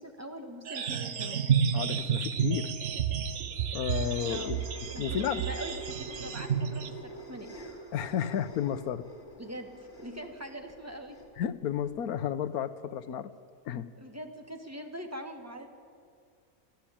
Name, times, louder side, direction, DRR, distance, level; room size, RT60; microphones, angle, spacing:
voice 1, 0.0-1.4 4.3-4.6 4.9-7.5 9.4-9.7 10.0-11.2 14.0-15.7, equal, 10° right, 4 dB, 1.7 m, -42 dB
sound 1, 0.7-6.9, right 7 dB, 60° right, 1.3 m, -31 dB
voice 2, 1.7-2.7 3.7-4.6 5.0-5.4 7.9-9.1 11.4-13.3 13.7-13.9, left 9 dB, 80° left, 11 dB, 1.3 m, -32 dB
sound 2, 3.2-12.0, right 2 dB, 45° left, 3.3 m, -46 dB
28.5 x 12.0 x 8.7 m, 2.2 s
omnidirectional pair, 1.6 m